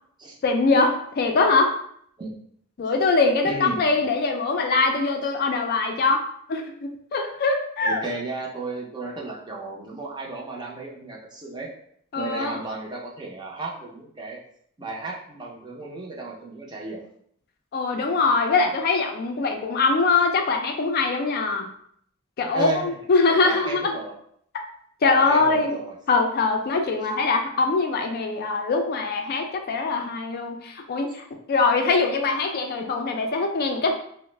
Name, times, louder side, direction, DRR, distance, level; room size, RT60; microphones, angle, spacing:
voice 1, 0.4-1.7 2.8-6.2 6.5-8.0 12.1-12.6 17.7-21.7 22.4-24.0 25.0-25.8 26.1-33.9, left 3 dB, 50° left, 3 dB, 0.4 m, -22 dB
voice 2, 3.4-3.8 5.2-5.3 7.8-11.7 12.1-14.4 14.8-17.1 22.5-22.9 23.3-24.1 25.1-26.0 27.0-27.1, right 3 dB, 20° right, -2 dB, 0.5 m, -34 dB
3.1 x 2.0 x 3.1 m, 0.66 s
head